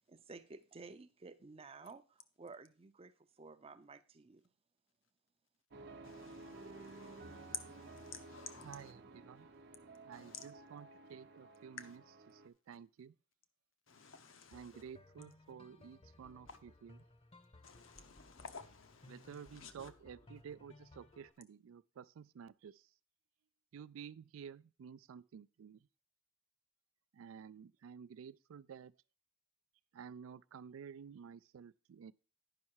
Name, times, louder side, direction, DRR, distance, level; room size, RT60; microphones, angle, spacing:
voice 1, 0.0-4.4, right 4 dB, 30° right, 0.5 m, -54 dB
sound 1, 5.7-12.5, right 3 dB, 55° right, 0.8 m, -54 dB
voice 2, 6.0-8.9 10.1-10.5 11.8-12.0 13.9-14.8 16.5-16.6 17.6-19.9, left 7 dB, 70° left, 0.9 m, -52 dB
voice 3, 8.6-9.5 10.0-12.0 12.3-13.1 14.5-16.9 19.1-22.9 23.7-25.9 27.1-28.9 29.9-32.1, right 7 dB, 80° right, 0.3 m, -52 dB
sound 2, 14.5-21.3, left 2 dB, 30° left, 0.8 m, -61 dB
9.6 x 5.6 x 4.6 m
head